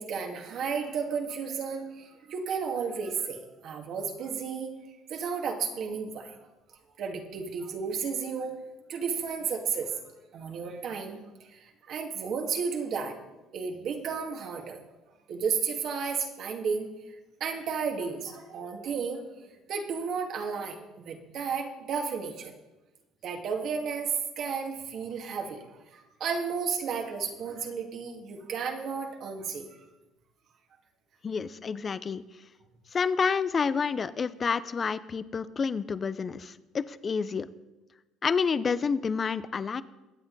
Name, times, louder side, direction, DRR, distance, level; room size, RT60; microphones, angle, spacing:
voice 1, 0.0-4.7 5.1-6.4 7.0-8.6 8.9-10.0 10.3-13.1 13.5-14.8 15.3-16.9 17.4-19.2 19.7-22.5 23.2-29.6, right 6 dB, 60° right, 3 dB, 2.1 m, -33 dB
voice 2, 31.2-32.2 32.9-37.5 38.2-39.8, left 5 dB, 35° left, 15 dB, 0.7 m, -29 dB
23.0 x 8.0 x 4.0 m, 1.0 s
supercardioid pair, 85°, 0 cm